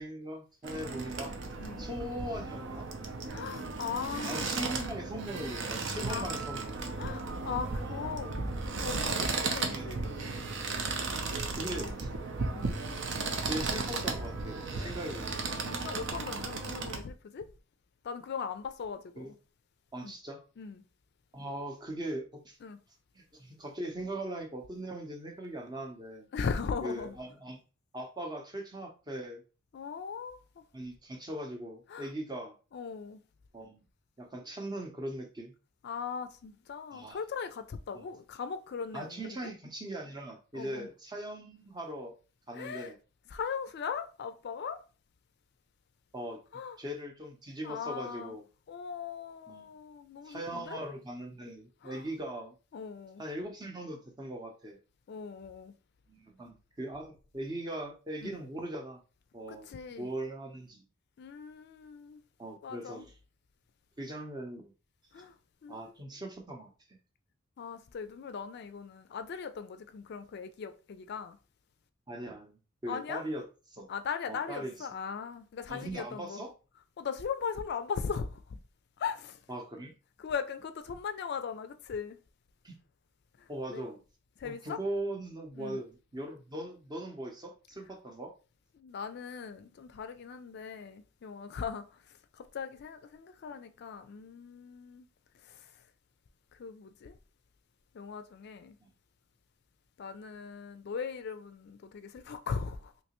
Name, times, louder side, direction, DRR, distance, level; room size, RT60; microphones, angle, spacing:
voice 1, 0.0-1.3 1.8-2.9 4.3-6.7 7.8-8.1 9.3-10.0 11.6-12.1 13.4-15.6 19.2-19.3 19.9-20.4 21.3-22.6 23.1-26.3 26.8-27.6 27.9-29.4 30.7-32.5 33.5-33.8 34.2-35.5 36.9-37.2 37.9-38.0 38.9-42.1 42.5-42.9 46.1-46.4 46.8-48.4 49.5-49.7 50.2-52.5 53.2-54.8 56.1-59.0 59.3-60.8 62.4-63.1 64.0-64.7 65.7-67.0 72.1-73.4 73.7-73.9 74.3-74.7 75.7-76.5 79.5-79.9 82.6-82.8 83.5-84.0 84.4-88.3 98.8-98.9, right 1 dB, 20° right, 0.6 m, -40 dB
sound 1, 0.6-17.0, right 3 dB, 65° right, 0.6 m, -35 dB
voice 2, 3.3-4.5 6.1-6.3 7.0-8.5 8.7-10.1 11.8-11.9 12.5-12.7 14.7-14.9 15.6-17.5 18.0-19.4 20.0-20.1 20.6-20.8 22.6-22.8 26.3-27.1 29.7-30.6 31.9-32.1 32.7-33.2 35.8-39.5 40.5-40.9 42.5-42.9 43.3-44.8 46.5-46.8 47.6-48.4 48.7-50.8 51.8-52.1 52.7-53.2 55.1-55.7 58.2-58.4 59.5-60.1 61.2-62.2 62.6-63.1 65.1-65.4 65.6-65.9 67.6-71.4 72.9-73.3 73.9-76.4 77.0-78.6 79.0-79.4 80.2-82.2 83.4-83.9 84.4-84.8 85.5-85.8 88.7-95.1 95.3-95.8 96.5-97.2 97.9-98.8 100.0-102.9, left 6 dB, 55° left, 0.4 m, -39 dB
3.2 x 2.9 x 2.9 m
head